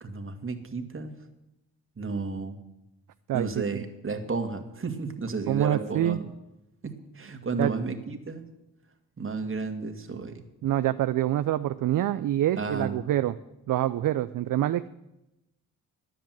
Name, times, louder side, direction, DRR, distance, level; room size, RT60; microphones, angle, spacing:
voice 1, 0.0-1.2 2.0-2.6 3.3-6.3 6.8-8.4 9.2-10.4 12.6-13.0, right 4 dB, 35° right, 7 dB, 1.8 m, -32 dB
voice 2, 3.3-3.8 5.5-6.2 7.6-7.7 10.6-13.4 13.7-14.9, right 13 dB, 60° right, 12 dB, 0.5 m, -26 dB
10.0 x 7.7 x 9.1 m, 0.93 s
supercardioid pair, 50°, 38 cm